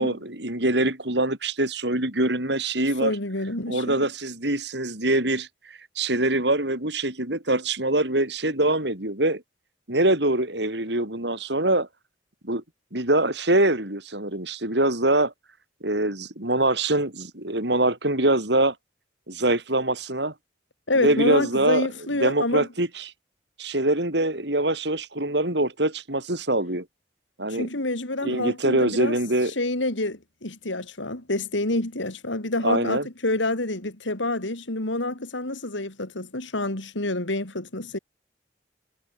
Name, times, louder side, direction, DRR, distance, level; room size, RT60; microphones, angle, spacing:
voice 1, 0.0-3.1 3.7-5.5 6.0-9.4 9.9-11.9 12.4-12.6 12.9-15.3 15.8-18.7 19.3-20.3 21.0-21.9 22.2-23.1 23.6-26.9 27.4-27.7 28.2-29.5 32.6-33.1, right 1 dB, 65° right, 5.3 m, -24 dB
voice 2, 3.0-4.1 20.9-22.7 27.5-29.2 29.6-38.0, left 2 dB, 90° left, 3.8 m, -27 dB
head